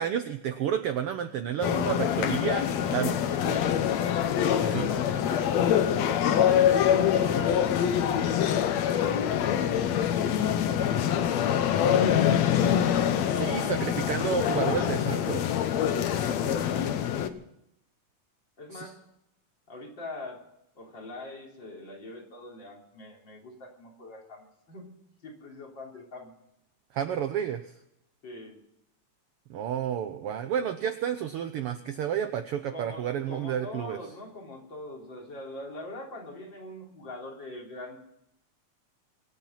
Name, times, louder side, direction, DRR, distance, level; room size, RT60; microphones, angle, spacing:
voice 1, 0.0-3.1 3.5-3.6 4.7-5.0 13.3-15.4 18.7-18.9 26.9-27.6 29.5-34.0, right 9 dB, 70° right, 9 dB, 1.4 m, -31 dB
sound 1, 1.6-17.3, left 9 dB, 70° left, 2.1 m, -25 dB
voice 2, 2.7-3.9 4.6-12.5 13.3-13.8 14.2-15.4 15.8-17.0 18.6-19.0 19.7-20.4 20.8-24.9 25.2-26.3 28.2-28.6 32.7-38.0, left 1 dB, 40° left, -1 dB, 3.9 m, -43 dB
24.0 x 9.1 x 5.8 m, 0.81 s
omnidirectional pair, 3.3 m